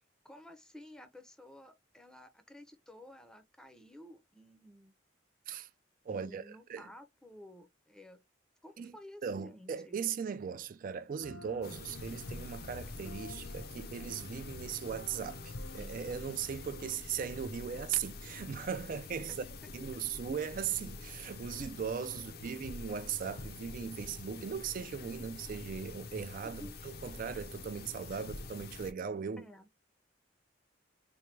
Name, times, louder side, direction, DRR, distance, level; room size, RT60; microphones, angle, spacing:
voice 1, 0.2-4.9 6.1-8.2 8.6-10.0 19.3-19.7 22.1-22.3 26.4-26.8 29.4-29.7, left 1 dB, 5° left, 0.6 m, -53 dB
voice 2, 6.1-6.9 8.8-9.0 9.2-19.4 19.7-29.5, right 7 dB, 45° right, 0.3 m, -38 dB
sound 1, 11.2-17.0, left 2 dB, 80° left, 1.1 m, -52 dB
sound 2, 11.6-28.9, left 3 dB, 55° left, 0.6 m, -46 dB
4.4 x 2.2 x 3.2 m
head